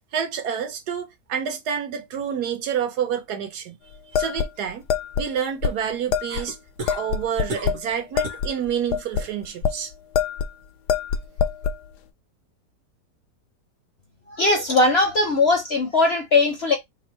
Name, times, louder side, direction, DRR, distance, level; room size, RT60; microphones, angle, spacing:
voice 1, 0.1-3.8 4.1-4.8 5.2-6.6 7.0-9.9, right 8 dB, 70° right, 1.3 m, -28 dB
sound 1, 4.1-5.3 5.6-5.7 6.1-6.5 6.9-7.8 8.2-9.8 10.1-10.5 10.9-11.8, left 7 dB, 75° left, 1.1 m, -24 dB
sound 2, 6.3-7.0 7.5-7.9 8.2-8.5 8.9-9.3 11.2-11.3, right 2 dB, 55° right, 1.3 m, -34 dB
voice 2, 14.3-16.8, left 3 dB, 50° left, 0.8 m, -19 dB
3.3 x 2.6 x 4.3 m
omnidirectional pair, 1.9 m